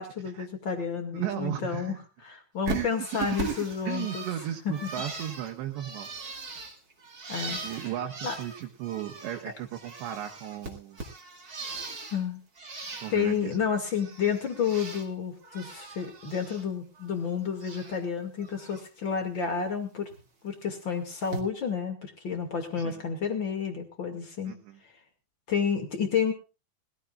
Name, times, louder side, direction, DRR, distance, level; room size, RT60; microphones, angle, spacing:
voice 1, 0.0-4.2 4.6-4.9 7.3-7.9 8.2-8.3 12.1-12.4 13.1-20.1 20.4-24.5 25.5-26.3, left 6 dB, 40° left, 4 dB, 1.7 m, -30 dB
voice 2, 1.1-2.0 2.7-3.5 3.8-6.1 7.6-11.0 13.0-13.6 22.8-23.0 24.4-24.8, right 11 dB, 70° right, 2 dB, 3.3 m, -35 dB
Bird, 2.6-9.4 9.7-12.2 12.5-13.4 13.7-15.1 15.4-16.6 16.9-18.0 18.4-18.8 20.1-20.2 21.2-21.4, right 3 dB, 35° right, 1.6 m, -40 dB
21.5 x 16.0 x 2.4 m, 0.31 s
omnidirectional pair, 5.6 m